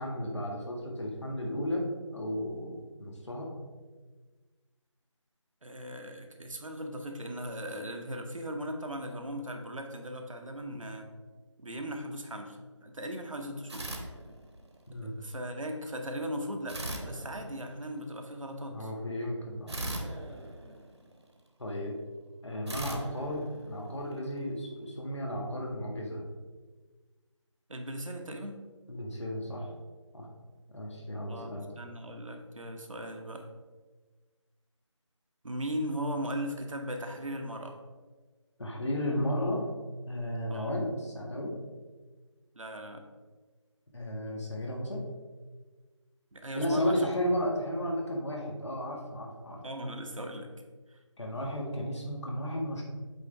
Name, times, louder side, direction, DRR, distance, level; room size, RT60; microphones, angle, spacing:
voice 1, 0.0-1.9 2.1-3.5 14.9-15.1 18.7-19.8 21.6-22.0 22.4-26.2 28.9-29.7 30.1-30.3 30.7-31.7 38.6-39.7 40.1-41.5 43.9-45.0 46.5-49.6 51.2-52.8, equal, 60° left, -1 dB, 1.8 m, -33 dB
voice 2, 5.6-11.1 11.6-13.9 15.0-18.9 27.7-28.6 31.3-33.5 35.4-37.8 40.5-40.8 42.5-43.0 46.3-47.1 49.6-50.5 50.9-51.0, equal, 85° right, 4 dB, 1.1 m, -38 dB
sound 1, 13.7-14.8 16.7-18.1 19.7-21.4 22.7-24.2, right 1 dB, 60° right, 1.1 m, -40 dB
8.3 x 3.8 x 3.4 m, 1.3 s
figure-of-eight pair, 170°, 16 cm